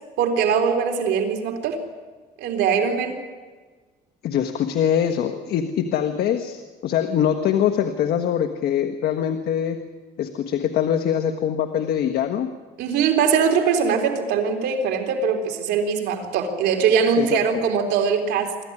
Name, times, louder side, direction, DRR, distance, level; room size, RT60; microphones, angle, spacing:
voice 1, 0.2-1.8 2.4-3.2 12.8-18.5, right 6 dB, 80° right, 3 dB, 3.7 m, -21 dB
voice 2, 4.2-9.8 10.2-12.5 17.2-17.6, left 9 dB, 70° left, 7 dB, 1.4 m, -23 dB
25.0 x 14.5 x 9.8 m, 1.4 s
cardioid pair, 110°, 17 cm